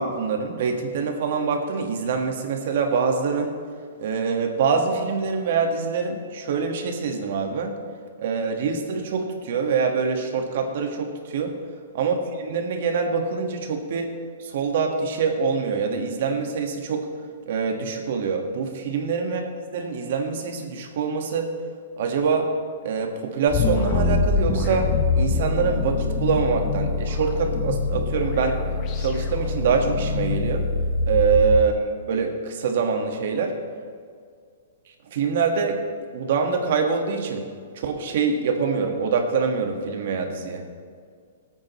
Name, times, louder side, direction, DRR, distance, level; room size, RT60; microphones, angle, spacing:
voice 1, 0.0-3.5 4.0-7.8 8.2-11.6 11.9-14.1 14.4-17.1 17.5-21.5 22.0-22.5 22.8-28.6 29.0-30.7 31.1-33.6 35.1-35.8 36.1-37.5 37.8-40.6, right 5 dB, 60° right, 3 dB, 1.7 m, -25 dB
sound 1, 23.5-31.6, left 3 dB, 30° left, 1.2 m, -24 dB
19.5 x 8.8 x 3.2 m, 2.1 s
hypercardioid pair, 155°, 0 cm